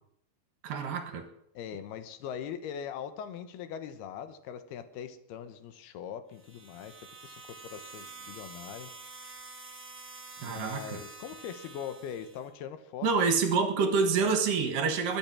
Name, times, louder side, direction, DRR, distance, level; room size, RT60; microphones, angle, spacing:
voice 1, 0.6-1.3 10.4-11.0 13.0-15.2, right 5 dB, 65° right, 8 dB, 2.9 m, -27 dB
voice 2, 1.5-6.9 7.2-8.9 10.4-13.1, left 8 dB, 80° left, 11 dB, 3.1 m, -41 dB
sound 1, 6.3-12.5, right 4 dB, 5° right, 1.7 m, -48 dB
21.5 x 8.8 x 6.1 m, 0.73 s
omnidirectional pair, 4.5 m